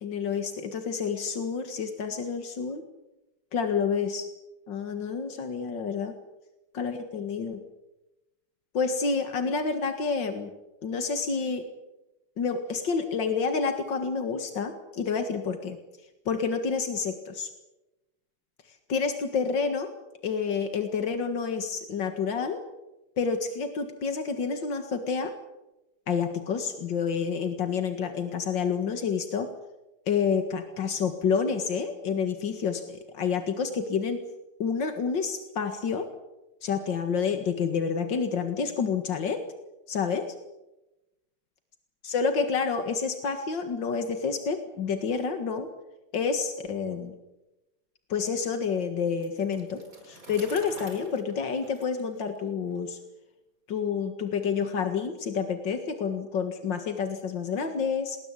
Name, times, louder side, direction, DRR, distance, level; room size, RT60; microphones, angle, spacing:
voice 1, 0.0-2.8 3.5-4.3 4.7-6.1 6.7-7.6 8.7-10.5 10.8-11.6 12.4-15.8 16.3-17.5 18.7-19.9 20.2-22.6 23.2-25.3 26.1-29.5 30.1-34.2 34.6-36.1 36.6-39.4 39.9-40.3 42.0-45.7 46.1-47.1 48.1-53.0 53.7-58.2, left 5 dB, 90° left, 7 dB, 2.5 m, -29 dB
Bicycle, 49.1-52.9, right 1 dB, 50° right, 5.4 m, -49 dB
29.0 x 20.5 x 8.4 m, 1.0 s
omnidirectional pair, 1.9 m